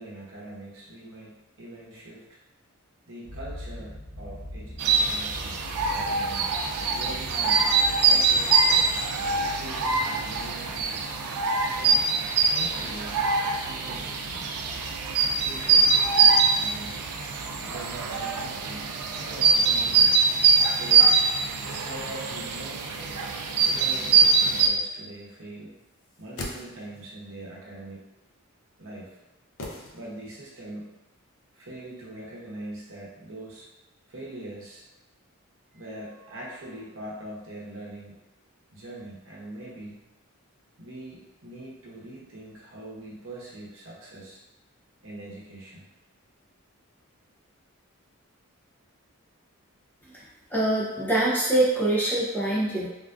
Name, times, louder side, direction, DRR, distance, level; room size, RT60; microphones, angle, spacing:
voice 1, 0.0-2.4 3.1-6.5 6.9-7.7 8.0-9.0 9.4-11.1 11.8-12.0 12.5-14.5 15.4-17.0 17.6-20.2 20.7-21.1 21.7-22.9 23.6-25.8 26.2-28.0 28.8-29.2 29.9-31.0 31.5-33.7 34.1-34.8 35.7-38.2 38.7-40.0 40.8-44.4 45.0-45.9, right 1 dB, 65° right, -5 dB, 0.8 m, -42 dB
sound 1, 3.2-17.7, left 1 dB, 35° right, 0.6 m, -45 dB
sound 2, 4.8-24.7, right 4 dB, 90° right, 0.4 m, -23 dB
sound 3, 26.0-27.2 29.6-30.5 30.8-30.9, left 2 dB, 65° left, 0.5 m, -40 dB
voice 2, 50.5-52.9, right 1 dB, 10° left, -6 dB, 0.4 m, -24 dB
3.5 x 2.3 x 2.4 m, 0.99 s
head